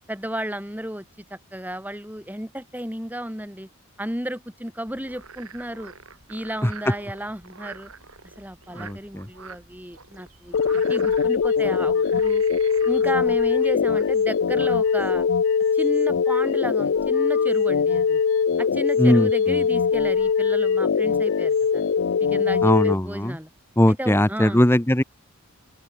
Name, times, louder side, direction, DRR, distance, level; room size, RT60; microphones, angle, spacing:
voice 1, 0.1-1.0 1.3-3.7 4.0-5.9 6.3-7.9 8.4-12.4 12.9-15.2 15.7-18.2 18.6-21.9 22.2-23.5 23.9-24.6, right 1 dB, 10° right, 7.3 m, -33 dB
Frog, 4.9-15.2, right 5 dB, 80° right, 6.0 m, -46 dB
voice 2, 8.7-9.3 19.0-19.6 22.6-23.4 23.8-25.0, left 1 dB, 10° left, 1.0 m, -20 dB
sound 1, 10.5-22.9, left 6 dB, 65° left, 0.4 m, -21 dB
open air
head